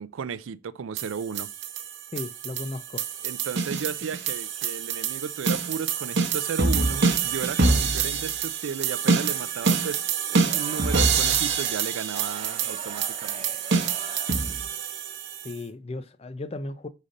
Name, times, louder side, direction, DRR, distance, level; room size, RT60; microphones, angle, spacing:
voice 1, 0.0-1.5 3.2-13.4, right 6 dB, 80° right, 0.4 m, -34 dB
sound 1, 1.0-15.5, right 5 dB, 60° right, 0.9 m, -26 dB
voice 2, 2.1-3.0 15.4-16.9, left 2 dB, 30° left, 0.4 m, -35 dB
Crowd, 10.4-14.5, right 4 dB, 30° right, 0.6 m, -42 dB
5.0 x 4.2 x 5.2 m
head